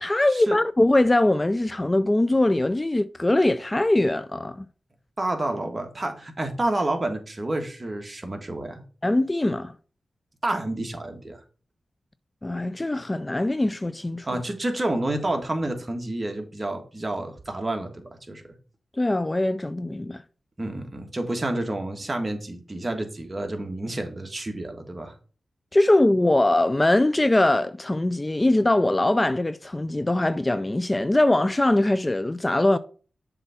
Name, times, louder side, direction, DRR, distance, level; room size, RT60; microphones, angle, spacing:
voice 1, 0.0-4.7 9.0-9.7 12.4-14.3 19.0-20.2 25.7-32.8, left 1 dB, 25° left, 0.4 m, -22 dB
voice 2, 5.2-8.8 10.4-11.4 14.2-17.9 18.3-18.5 20.6-25.1, right 1 dB, 35° right, 1.6 m, -29 dB
7.3 x 3.4 x 5.7 m
cardioid pair, 50°, 0 cm